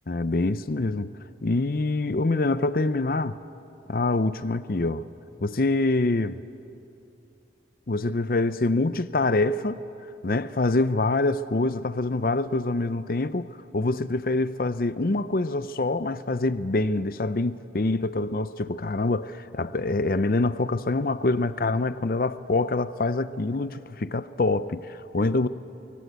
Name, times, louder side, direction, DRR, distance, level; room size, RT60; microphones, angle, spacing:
voice 1, 0.1-1.1 1.4-3.4 3.9-5.0 5.4-6.4 7.9-9.8 10.2-13.5 13.7-25.5, left 2 dB, 50° left, 0.6 m, -25 dB
25.0 x 24.0 x 8.1 m
head